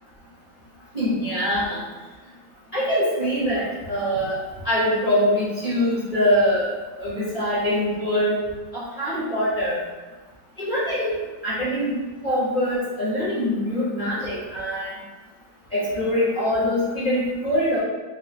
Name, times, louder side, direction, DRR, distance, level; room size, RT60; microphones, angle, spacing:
voice 1, 0.9-1.8 2.7-4.4 4.6-6.7 7.0-8.4 8.7-9.8 10.6-11.1 11.4-12.0 12.2-14.9 15.7-17.8, equal, 25° left, -11 dB, 0.9 m, -23 dB
3.8 x 2.3 x 3.4 m, 1.2 s
omnidirectional pair, 2.1 m